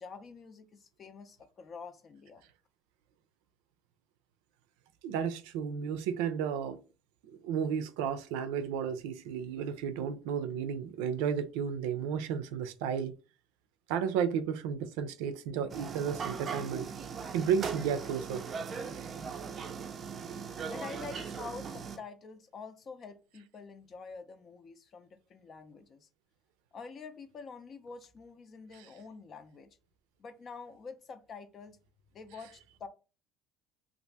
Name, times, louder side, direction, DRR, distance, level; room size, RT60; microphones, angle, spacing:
voice 1, 0.0-2.4 20.2-20.3 20.7-26.1 26.7-29.8 30.2-31.8 32.1-32.9, left 5 dB, 35° left, 0.5 m, -47 dB
voice 2, 5.0-6.8 7.4-13.1 13.9-16.9 17.3-18.4 18.9-19.1, right 7 dB, 90° right, 0.5 m, -33 dB
sound 1, 15.7-22.0, right 6 dB, 30° right, 0.4 m, -39 dB
2.7 x 2.5 x 3.3 m
cardioid pair, 140°, 0 cm